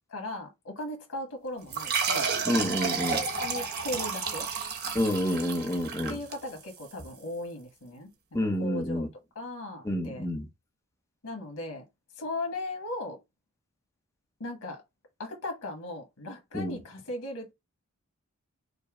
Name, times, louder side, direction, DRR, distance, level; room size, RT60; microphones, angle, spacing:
voice 1, 0.1-2.3 3.1-4.5 6.1-8.1 8.6-9.1 9.3-10.3 11.2-11.8 12.1-13.2 14.4-14.8 15.2-17.5, left 1 dB, 90° left, 1.2 m, -37 dB
sound 1, 1.7-6.9, right 5 dB, 45° right, 1.0 m, -31 dB
voice 2, 2.5-3.2 4.9-6.2 8.3-9.1 9.8-10.5 16.5-16.8, left 1 dB, 15° left, 0.7 m, -28 dB
5.3 x 2.0 x 4.7 m
head